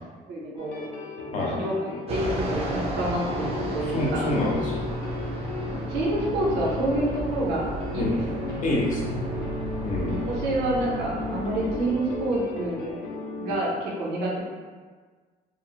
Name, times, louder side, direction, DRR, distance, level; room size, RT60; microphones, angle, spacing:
voice 1, 0.3-0.8 1.5-4.3 5.6-7.7 7.9-8.4 9.3-9.5 10.1-12.9 13.4-14.4, right 1 dB, 85° right, -4 dB, 0.7 m, -28 dB
sound 1, 0.6-13.6, left 3 dB, 85° left, 0.5 m, -36 dB
Fixed-wing aircraft airplane, 2.1-12.9, right 1 dB, 35° right, 0.5 m, -34 dB
voice 2, 3.9-4.8 8.0-8.2 8.6-9.2 9.8-10.2, left 1 dB, 50° left, -3 dB, 0.7 m, -26 dB
2.8 x 2.0 x 2.8 m, 1.5 s
cardioid pair, 110°, 17 cm